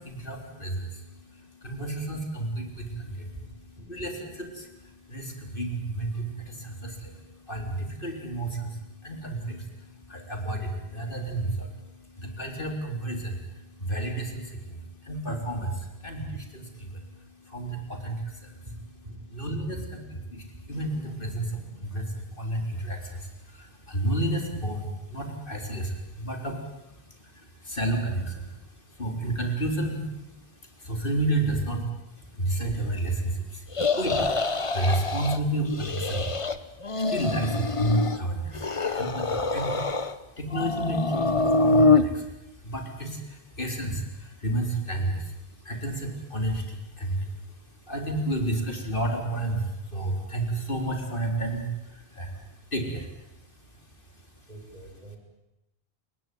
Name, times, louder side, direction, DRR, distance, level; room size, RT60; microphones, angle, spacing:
voice 1, 0.0-18.7 19.3-19.8 20.1-54.3, right 1 dB, 55° left, 3 dB, 4.1 m, -32 dB
Boom, 20.7-24.0, equal, 90° left, 5.3 m, -50 dB
sound 1, 33.7-35.4 35.7-36.6 36.8-38.2 38.5-40.2 40.5-42.0, left 3 dB, 30° left, 1.1 m, -25 dB
voice 2, 54.5-55.2, right 1 dB, 40° right, 1 dB, 6.7 m, -43 dB
29.5 x 16.5 x 9.3 m, 0.92 s
omnidirectional pair, 1.1 m